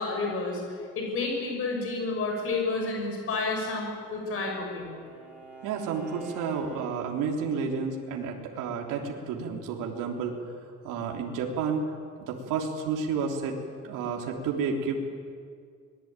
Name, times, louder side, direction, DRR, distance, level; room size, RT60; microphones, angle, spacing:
voice 1, 0.0-4.9, left 3 dB, 45° left, 1 dB, 6.1 m, -30 dB
Bowed string instrument, 3.6-7.2, right 5 dB, 5° right, 5.3 m, -46 dB
voice 2, 5.6-10.3 10.8-11.9 12.2-13.6 13.8-15.0, right 5 dB, 90° right, 1 dB, 3.3 m, -31 dB
25.5 x 20.5 x 9.0 m, 2.1 s
cardioid pair, 160°, 31 cm